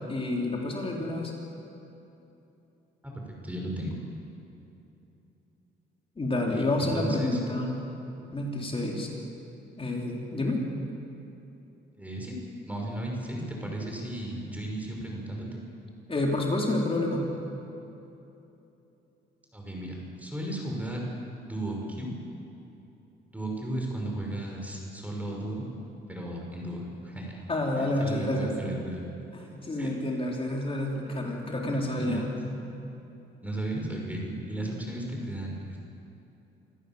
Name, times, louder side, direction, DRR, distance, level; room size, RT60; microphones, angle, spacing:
voice 1, 0.1-1.3 6.2-7.8 8.3-9.1 9.8-10.6 16.1-17.2 27.5-28.5 29.3-32.6, left 2 dB, 30° left, -2 dB, 4.5 m, -29 dB
voice 2, 3.4-3.9 6.5-7.4 12.0-12.4 12.7-15.6 19.5-21.0 21.5-22.1 23.3-25.7 26.1-27.4 27.8-29.0 29.8-29.9 31.1-31.3 31.9-32.2 33.4-35.8, right 1 dB, 5° right, -1 dB, 5.7 m, -35 dB
27.0 x 15.0 x 7.4 m, 2.9 s
cardioid pair, 90°, 20 cm